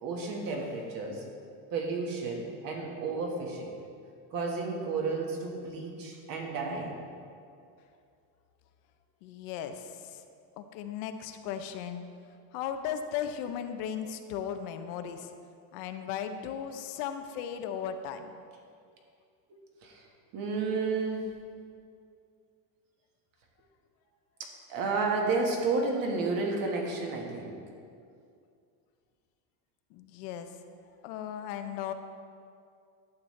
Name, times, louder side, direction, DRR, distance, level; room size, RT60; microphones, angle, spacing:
voice 1, 0.0-1.2 1.7-3.7 4.3-6.9 19.5-20.1 20.3-21.3 24.4-27.6, right 3 dB, 45° right, 1 dB, 1.4 m, -32 dB
voice 2, 9.2-10.2 10.6-12.0 12.5-15.3 15.7-18.3 29.9-30.5 31.0-31.9, left 8 dB, 70° left, 8 dB, 0.7 m, -36 dB
11.5 x 7.3 x 3.2 m, 2.4 s
cardioid pair, 155°, 46 cm